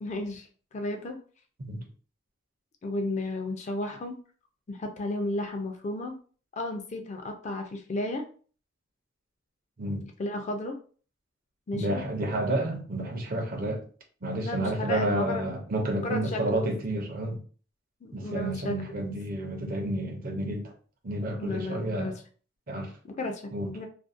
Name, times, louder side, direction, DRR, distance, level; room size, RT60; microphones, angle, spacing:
voice 1, 0.0-1.2 2.8-4.2 4.7-6.2 6.5-8.2 10.2-10.8 11.7-12.0 14.4-15.4 16.0-16.7 18.0-18.7 21.4-22.1 23.0-23.9, left 2 dB, 35° left, 0.4 m, -33 dB
voice 2, 11.7-13.8 14.2-17.4 18.1-20.7 21.0-22.1 22.7-22.9 23.5-23.7, right 1 dB, 45° right, 0.5 m, -30 dB
2.5 x 2.0 x 2.4 m
head